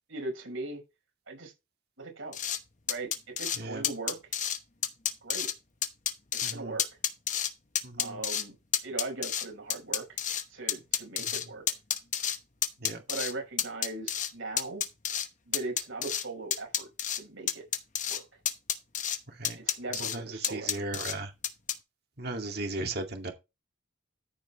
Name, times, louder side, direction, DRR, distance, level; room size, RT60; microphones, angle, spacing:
voice 1, 0.1-0.8 1.3-1.5 2.0-2.4 2.9-4.2 5.2-5.5 6.3-6.9 8.0-8.6 8.8-10.2 10.5-11.6 13.1-14.9 15.5-17.7 18.1-18.2 19.6-20.8, right 2 dB, 75° right, 5.7 m, -39 dB
sound 1, 2.3-2.6 2.9-3.6 3.8-4.6 4.8-5.5 5.8-6.5 6.8-7.5 7.8-8.4 8.7-10.4 10.7-12.4 12.6-13.3 13.6-14.3 14.6-15.3 15.5-16.2 16.5-17.2 17.5-18.2 18.5-19.2 19.4-20.2 20.4-21.1 21.4-21.7, left 9 dB, 40° left, 1.0 m, -30 dB
voice 2, 6.4-6.7 7.8-8.2 12.8-13.0 19.4-19.6 19.9-21.3 22.2-23.3, right 2 dB, 50° right, 2.3 m, -36 dB
13.5 x 5.5 x 4.2 m
head